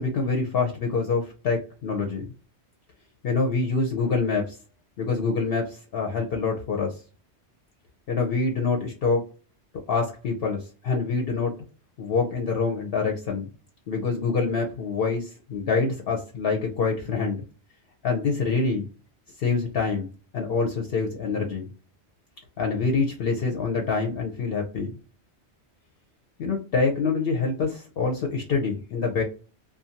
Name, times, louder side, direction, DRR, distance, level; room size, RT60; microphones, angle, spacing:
voice 1, 0.0-2.3 3.2-4.6 5.0-7.0 8.1-9.3 9.9-11.5 12.0-13.5 13.9-17.4 18.0-18.8 19.4-20.1 20.3-21.7 22.6-24.9 26.4-29.2, left 4 dB, 60° left, 1 dB, 0.8 m, -26 dB
2.5 x 2.3 x 2.7 m, 0.34 s
omnidirectional pair, 1.2 m